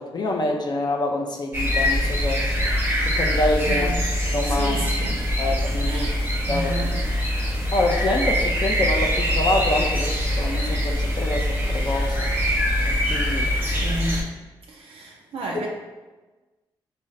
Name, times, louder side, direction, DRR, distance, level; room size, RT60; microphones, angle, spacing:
voice 1, 0.0-2.4 3.0-3.9 4.3-4.9 5.4-6.0 6.5-6.9 7.7-12.3 12.9-13.5, left 2 dB, 45° left, 1 dB, 0.4 m, -26 dB
sound 1, 1.5-14.2, equal, 25° right, 0.8 m, -23 dB
voice 2, 3.7-4.0 4.4-5.2 5.8-6.2 6.5-7.1 13.8-14.2 14.7-15.7, right 2 dB, 65° right, 0 dB, 0.4 m, -31 dB
3.7 x 2.1 x 2.5 m, 1.2 s
supercardioid pair, 50°, 10 cm